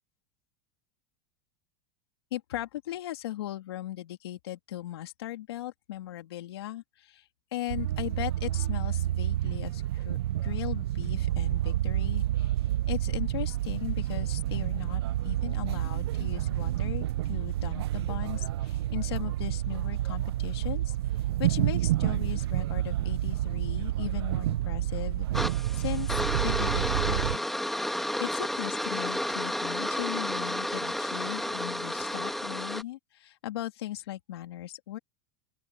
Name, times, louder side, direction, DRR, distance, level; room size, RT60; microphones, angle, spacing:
voice 1, 2.3-12.5 12.9-20.9 21.4-27.4 28.2-35.0, left 14 dB, 90° left, 3.1 m, -38 dB
sound 1, 7.7-27.4, right 13 dB, 90° right, 0.5 m, -29 dB
sound 2, 25.3-32.8, left 1 dB, ahead, 2.3 m, -31 dB
open air
supercardioid pair, 130°, 13 cm